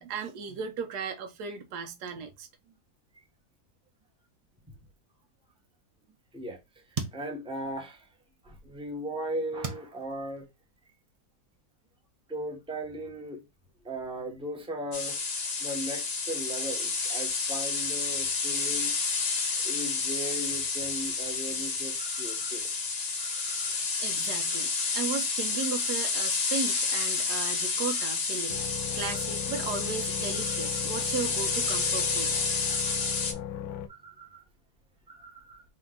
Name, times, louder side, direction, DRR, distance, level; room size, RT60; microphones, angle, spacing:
voice 1, 0.0-2.5 24.0-28.7 28.9-32.3, right 5 dB, 90° right, 1.3 m, -36 dB
sound 1, 6.1-6.2 6.5-8.4 8.8-10.9, right 5 dB, 35° right, 0.6 m, -40 dB
voice 2, 6.3-8.1 8.4-10.5 12.3-13.4 13.8-15.3 15.6-19.1 19.6-22.7 23.2-23.8 24.8-24.9 29.1-29.2 30.4-30.8 32.7-33.2 33.6-34.5 35.1-35.6, equal, 5° right, 0.8 m, -38 dB
sound 2, 14.9-33.3, left 4 dB, 45° left, 1.0 m, -30 dB
sound 3, 28.5-33.9, left 9 dB, 75° left, 1.1 m, -38 dB
4.3 x 2.8 x 3.7 m
omnidirectional pair, 1.7 m